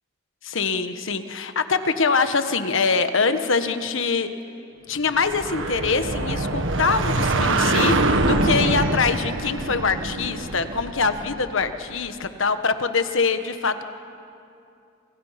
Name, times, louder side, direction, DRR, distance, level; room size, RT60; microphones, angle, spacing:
voice 1, 0.4-4.3 4.9-13.8, left 4 dB, 70° left, 9 dB, 1.3 m, -24 dB
sound 1, 5.2-11.8, right 2 dB, 70° right, 1.5 m, -24 dB
29.0 x 27.5 x 5.9 m, 2.6 s
head